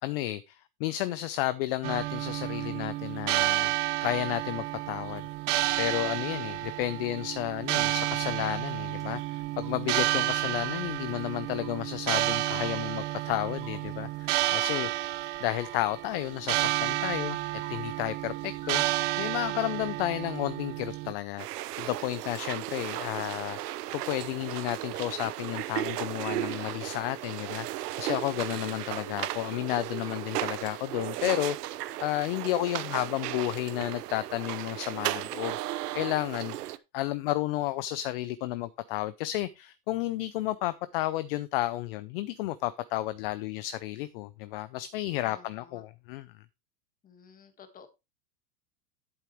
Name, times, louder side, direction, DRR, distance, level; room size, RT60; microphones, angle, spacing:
voice 1, 0.0-3.7 4.0-5.3 5.8-14.9 15.4-17.4 17.7-18.8 19.2-46.3, left 15 dB, 40° left, 0.5 m, -32 dB
sound 1, 1.8-21.1, right 16 dB, 50° right, 1.0 m, -31 dB
sound 2, 9.0-9.1 9.3-20.5, right 1 dB, 5° right, 2.1 m, -57 dB
voice 2, 14.5-15.1 32.8-33.2 45.2-45.8 47.0-47.9, left 6 dB, 20° left, 1.5 m, -54 dB
sound 3, 21.4-36.8, right 15 dB, 75° right, 1.0 m, -35 dB
11.0 x 8.4 x 3.0 m
supercardioid pair, 155°, 47 cm